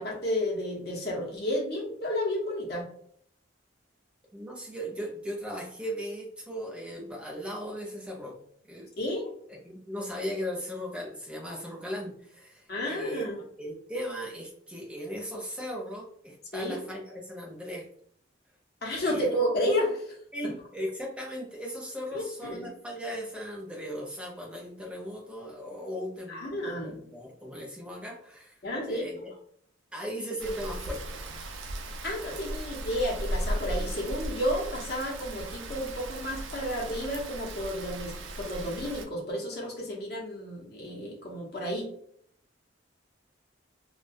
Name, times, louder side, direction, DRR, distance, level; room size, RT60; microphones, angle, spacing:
voice 1, 0.0-2.9 9.0-9.3 12.7-13.3 16.5-16.8 18.8-20.2 22.1-22.7 26.3-27.0 28.6-29.0 32.0-38.1 38.4-41.9, equal, 55° left, -2 dB, 0.7 m, -31 dB
voice 2, 4.3-8.4 8.7-8.9 9.5-13.3 13.6-17.9 19.1-19.3 20.3-28.5 28.8-29.3 29.9-31.2, equal, 5° right, -2 dB, 0.5 m, -37 dB
Rain, 30.4-39.1, right 1 dB, 90° right, 0.4 m, -36 dB
2.2 x 2.2 x 2.5 m, 0.63 s
head